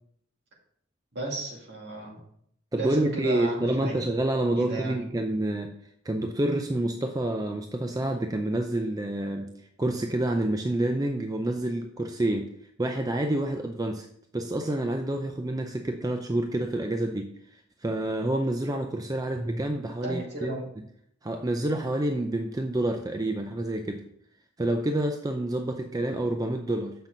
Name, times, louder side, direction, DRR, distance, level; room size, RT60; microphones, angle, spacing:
voice 1, 1.1-2.2 2.8-4.1 4.5-5.0 20.0-20.6, right 1 dB, 60° right, -1 dB, 2.2 m, -34 dB
voice 2, 2.7-5.7 6.0-9.5 9.8-12.5 12.8-14.1 14.3-17.3 17.8-20.6 21.2-24.0 24.6-26.9, right 1 dB, 20° right, 4 dB, 0.5 m, -28 dB
7.3 x 5.8 x 3.8 m, 0.68 s
head